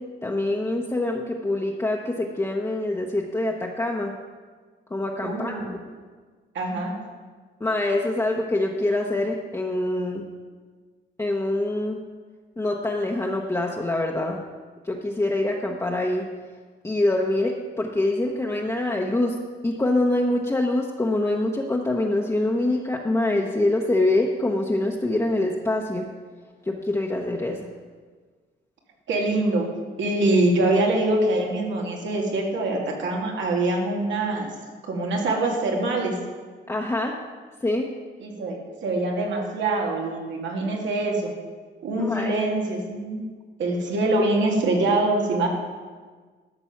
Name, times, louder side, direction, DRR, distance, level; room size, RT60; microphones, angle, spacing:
voice 1, 0.0-4.1 4.9-5.6 5.9-6.0 7.6-10.2 11.2-12.0 12.6-14.4 14.8-16.3 16.8-19.4 19.6-26.1 26.6-27.6 36.7-37.1 37.6-37.9 42.0-42.4, left 2 dB, 15° left, -1 dB, 0.9 m, -25 dB
voice 2, 5.2-5.7 6.5-6.9 29.1-29.7 30.0-34.5 34.8-36.1 38.2-41.3 41.8-43.3 43.6-45.5, right 2 dB, 90° right, 0 dB, 2.2 m, -24 dB
13.0 x 6.9 x 5.9 m, 1.5 s
cardioid pair, 115°, 19 cm